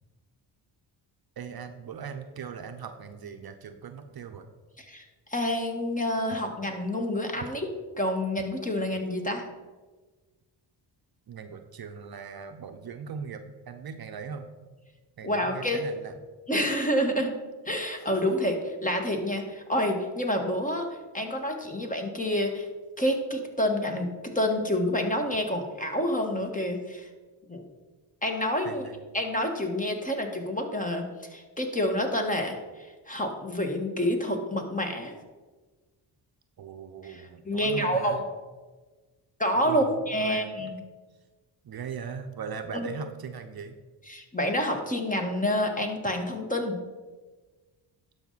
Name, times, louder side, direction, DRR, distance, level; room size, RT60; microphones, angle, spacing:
voice 1, 1.4-4.5 11.3-14.7 15.2-16.2 28.6-29.0 36.6-38.2 39.6-40.7 41.6-43.7, right 6 dB, 50° right, 7 dB, 0.8 m, -39 dB
voice 2, 5.3-7.7 8.0-9.5 15.2-15.8 16.5-17.3 17.6-20.9 21.1-22.7 23.0-24.1 24.3-27.1 27.5-27.6 28.2-28.9 29.1-31.0 31.3-35.1 37.0-38.3 39.4-40.8 42.7-42.9 44.1-46.8, left 1 dB, 15° left, 3 dB, 1.6 m, -28 dB
12.0 x 5.3 x 4.1 m, 1.3 s
cardioid pair, 70°, 47 cm